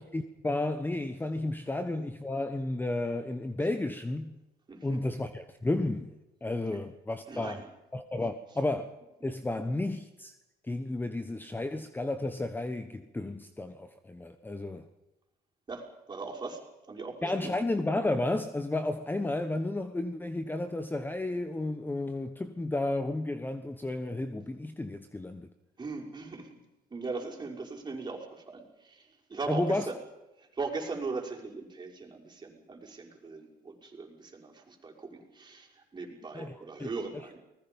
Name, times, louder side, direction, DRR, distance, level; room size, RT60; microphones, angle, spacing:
voice 1, 0.0-4.4 4.8-6.1 6.4-7.6 7.9-8.9 9.2-10.3 10.7-14.8 17.2-25.5 29.5-29.9 36.3-36.9, left 2 dB, 10° left, 1.2 m, -32 dB
voice 2, 4.7-5.0 7.3-7.7 15.7-16.6 16.9-17.5 25.8-26.5 26.9-30.0 30.4-37.4, right 4 dB, 25° right, 5.8 m, -39 dB
29.5 x 20.5 x 5.4 m
cardioid pair, 110°, 17 cm